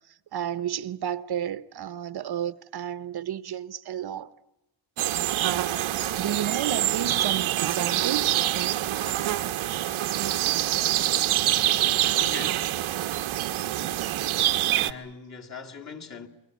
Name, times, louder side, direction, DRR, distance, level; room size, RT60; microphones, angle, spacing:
voice 1, 0.3-4.3 6.2-8.9, right 10 dB, 50° right, 0.9 m, -32 dB
sound 1, 5.0-14.9, right 13 dB, 90° right, 1.2 m, -25 dB
voice 2, 12.2-12.7 14.7-16.3, left 5 dB, 35° left, 2.1 m, -40 dB
28.0 x 22.5 x 9.3 m
wide cardioid pair, 170°, 48 cm